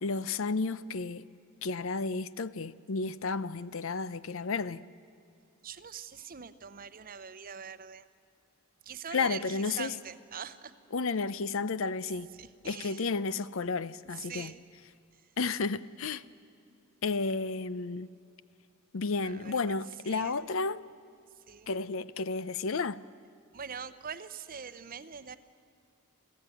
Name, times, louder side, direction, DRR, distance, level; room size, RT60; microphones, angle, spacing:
voice 1, 0.0-1.2 1.6-4.8 9.1-9.9 10.9-12.3 12.6-14.5 15.4-16.2 17.0-18.1 18.9-20.8 21.7-23.0, left 4 dB, 65° left, 0.6 m, -32 dB
voice 2, 5.6-8.1 8.8-10.7 12.4-13.0 14.1-14.6 19.2-19.8 20.0-20.5 21.5-21.7 23.5-25.4, right 7 dB, 40° right, 0.8 m, -43 dB
29.5 x 15.0 x 9.1 m
head